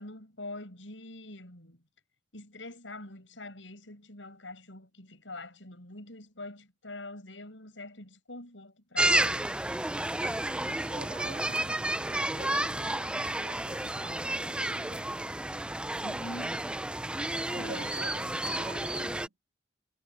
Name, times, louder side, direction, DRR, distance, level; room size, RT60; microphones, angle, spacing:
voice 1, 0.0-1.8 2.3-9.4 16.0-16.6 17.5-18.0, left 2 dB, 85° left, 7.9 m, -44 dB
sound 1, 9.0-19.3, right 1 dB, 5° right, 0.4 m, -31 dB
voice 2, 10.7-15.1 17.5-19.3, right 2 dB, 85° right, 2.4 m, -48 dB
head